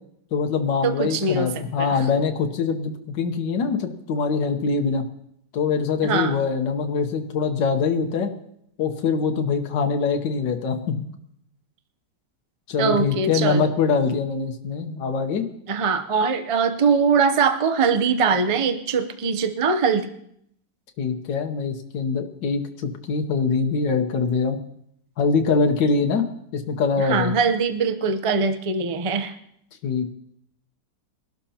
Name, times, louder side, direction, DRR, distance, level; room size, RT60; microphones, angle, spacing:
voice 1, 0.3-5.0 5.5-8.3 8.8-11.0 12.7-15.5 21.0-24.6 25.2-26.2 26.5-27.3 29.8-30.1, left 5 dB, 80° left, 4 dB, 1.7 m, -23 dB
voice 2, 0.8-1.5 1.8-2.0 6.0-6.4 12.8-13.7 15.7-20.1 27.0-29.4, right 5 dB, 60° right, 8 dB, 0.3 m, -22 dB
22.5 x 12.0 x 2.9 m, 0.71 s
omnidirectional pair, 1.9 m